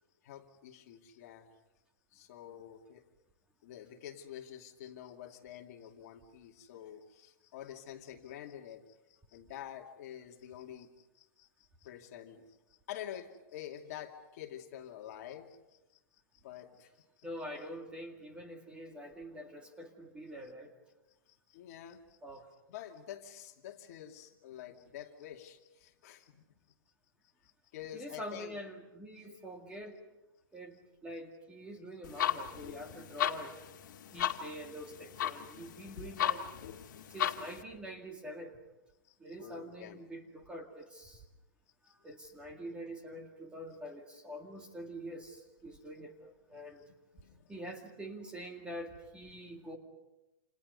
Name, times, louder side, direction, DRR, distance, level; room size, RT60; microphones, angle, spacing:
voice 1, 0.2-1.5 2.1-3.0 3.6-16.0 16.3-17.3 21.3-22.2 22.7-26.4 27.4-28.6 29.2-29.4 39.0-40.0 41.8-41.9 46.5-47.6 49.4-49.5, left 10 dB, 45° left, 3 dB, 2.6 m, -48 dB
voice 2, 17.2-20.7 22.2-22.4 27.9-30.0 30.5-33.6 34.1-36.5 37.1-38.6 39.2-41.2 42.0-46.9 47.5-49.8, equal, 10° right, 3 dB, 2.1 m, -45 dB
sound 1, 32.0-37.6, left 11 dB, 65° left, 2.0 m, -36 dB
29.0 x 28.0 x 5.5 m, 1.0 s
hypercardioid pair, 165°, 11 cm